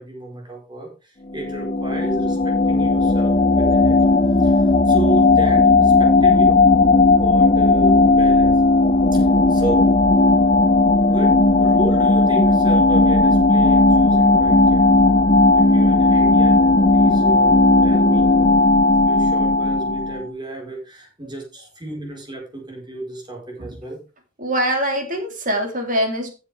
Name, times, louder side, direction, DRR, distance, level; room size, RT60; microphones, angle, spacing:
voice 1, 0.0-4.0 4.4-6.7 7.1-8.6 9.1-9.9 11.1-15.1 15.5-18.6 19.0-24.0, right 2 dB, 20° right, 0 dB, 4.8 m, -33 dB
sound 1, 1.3-20.2, left 2 dB, 25° left, 0.8 m, -15 dB
voice 2, 24.4-26.3, equal, 35° right, 3 dB, 3.6 m, -23 dB
14.5 x 7.5 x 3.5 m, 0.33 s
head